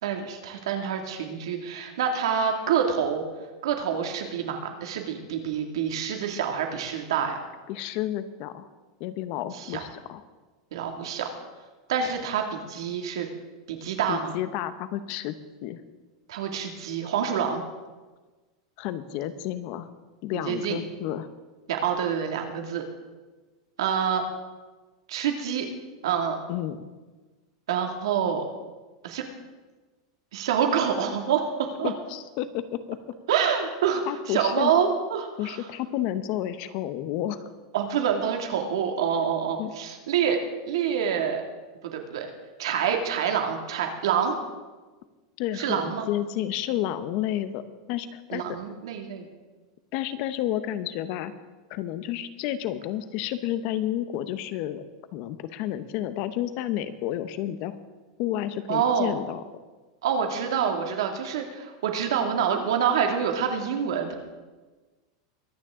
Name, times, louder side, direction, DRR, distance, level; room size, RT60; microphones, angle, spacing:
voice 1, 0.0-3.2 3.6-7.4 9.5-9.8 10.7-11.3 11.9-13.3 13.7-14.3 16.3-17.6 20.4-20.8 21.7-22.8 23.8-24.2 25.1-25.7 26.0-26.4 27.7-28.4 29.0-29.2 30.3-31.9 33.3-35.6 37.7-40.4 40.7-41.4 41.8-42.3 42.6-44.4 45.6-46.1 48.3-49.3 58.7-59.1 60.0-64.2, right 7 dB, 80° right, 3 dB, 2.3 m, -27 dB
voice 2, 7.7-8.7 9.0-10.2 14.1-15.4 15.6-15.8 18.8-19.9 20.2-21.3 26.5-26.9 31.8-33.0 34.1-34.7 35.4-37.5 39.6-39.7 45.4-48.5 49.9-51.3 51.7-54.8 55.1-57.7 58.2-59.4, left 12 dB, 50° left, 12 dB, 0.9 m, -31 dB
23.0 x 9.5 x 3.8 m, 1.3 s
supercardioid pair, 150°, 3 cm